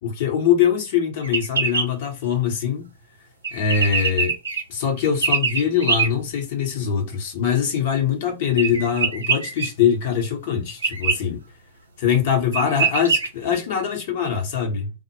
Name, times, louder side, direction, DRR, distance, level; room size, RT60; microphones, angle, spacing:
voice 1, 0.0-2.9 3.5-4.3 4.7-11.4 12.0-14.9, left 8 dB, 55° left, 0.8 m, -22 dB
sound 1, 1.2-1.9 3.4-4.6 5.2-6.1 8.6-9.7 10.8-11.2 12.2-12.3 12.5-13.3, right 5 dB, 75° right, 0.5 m, -22 dB
2.1 x 2.0 x 2.9 m
figure-of-eight pair, 90°, 0 cm